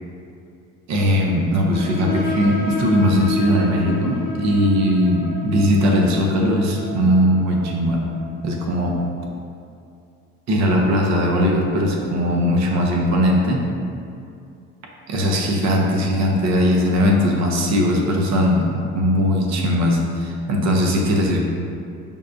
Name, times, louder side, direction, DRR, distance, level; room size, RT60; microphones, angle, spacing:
voice 1, 0.9-8.0 8.4-9.0 10.5-13.6 15.1-21.4, equal, 45° right, 0 dB, 0.7 m, -19 dB
sound 1, 1.7-9.0, left 3 dB, 25° left, 0.6 m, -31 dB
5.2 x 2.1 x 2.6 m, 2.5 s
hypercardioid pair, 70°, 38 cm